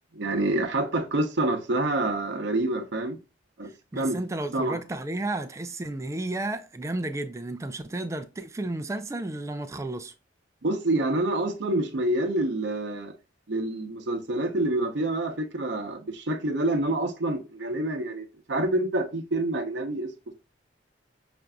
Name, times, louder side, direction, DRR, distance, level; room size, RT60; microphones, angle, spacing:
voice 1, 0.1-3.2 3.6-4.2 4.5-4.8 10.6-13.1 13.5-20.1, right 2 dB, 65° right, 0.7 m, -27 dB
voice 2, 3.9-10.1, right 2 dB, 15° right, 0.3 m, -32 dB
5.9 x 2.5 x 2.2 m
head